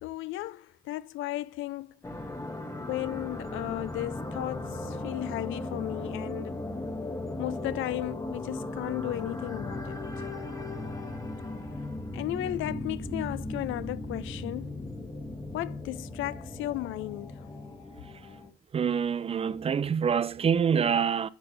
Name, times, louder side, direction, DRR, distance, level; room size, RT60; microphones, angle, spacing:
voice 1, 0.0-1.9 2.9-6.6 7.4-10.3 12.1-14.8 15.5-17.5, left 16 dB, 85° left, 0.4 m, -35 dB
sound 1, 2.0-18.5, left 2 dB, 15° left, 1.0 m, -37 dB
voice 2, 18.7-21.3, right 7 dB, 30° right, 0.4 m, -26 dB
11.0 x 5.6 x 2.6 m
cardioid pair, 90°, 20 cm